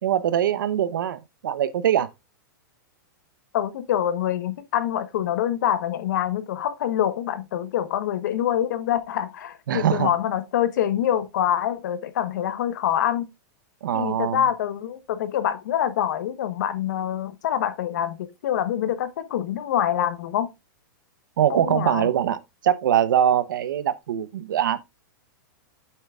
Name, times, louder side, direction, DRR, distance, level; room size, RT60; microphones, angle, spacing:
voice 1, 0.0-2.1 9.7-10.1 13.8-14.4 21.4-24.8, right 10 dB, 80° right, 0.9 m, -23 dB
voice 2, 3.5-13.3 13.9-20.5 21.5-22.1, left 10 dB, 60° left, 1.1 m, -25 dB
8.6 x 7.8 x 2.4 m
supercardioid pair, 170°, 11 cm